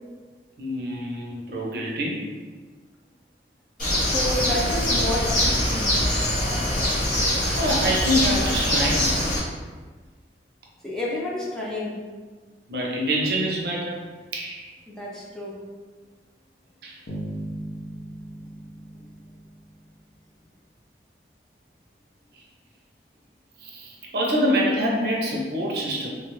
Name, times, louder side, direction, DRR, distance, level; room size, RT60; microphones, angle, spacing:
voice 1, 0.6-2.2 7.2-9.1 12.7-14.0 14.3-14.7 16.8-17.0 23.6-26.1, equal, 60° right, -2 dB, 0.6 m, -26 dB
Bird, 3.8-9.4, left 1 dB, 50° left, 1.3 m, -23 dB
voice 2, 3.9-6.0 10.8-12.0 14.9-15.5, left 1 dB, 5° left, -6 dB, 0.4 m, -30 dB
sound 1, 17.1-20.1, right 1 dB, 65° left, 0.6 m, -37 dB
3.2 x 2.3 x 3.1 m, 1.4 s
head